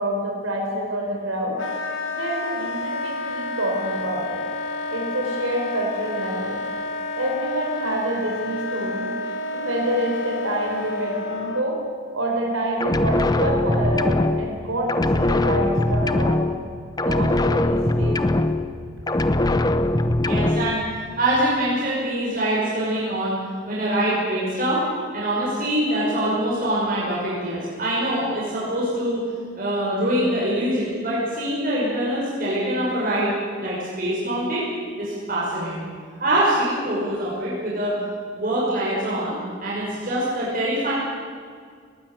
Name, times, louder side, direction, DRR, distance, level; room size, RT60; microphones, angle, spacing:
voice 1, 0.0-1.6 2.1-4.4 4.9-6.6 7.2-9.1 9.5-11.8 12.1-16.5 16.9-18.6, right 1 dB, 80° right, -1 dB, 4.5 m, -27 dB
Wind instrument woodwind instrument, 1.6-11.7, left 2 dB, 70° left, 2.3 m, -30 dB
sound 1, 12.8-14.6 14.9-16.7 17.0-18.8 19.1-20.8, left 1 dB, 20° left, 0.8 m, -21 dB
voice 2, 20.2-20.9 21.2-24.8 25.1-29.2 29.6-34.7 35.0-38.0 38.4-40.9, right 1 dB, 40° right, -7 dB, 5.8 m, -24 dB
19.0 x 19.0 x 9.2 m, 2.1 s
head